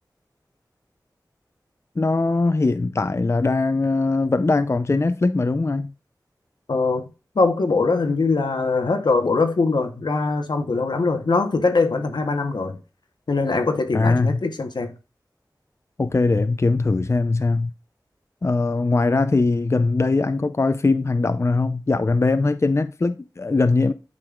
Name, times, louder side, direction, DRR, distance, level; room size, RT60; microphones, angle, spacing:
voice 1, 2.0-5.9 13.9-14.4 16.0-17.7 18.4-23.9, left 3 dB, 40° left, 0.4 m, -21 dB
voice 2, 6.7-7.0 7.3-12.8 13.3-15.0, left 3 dB, 85° left, 0.9 m, -22 dB
8.5 x 5.3 x 2.4 m
wide cardioid pair, 50°, 7 cm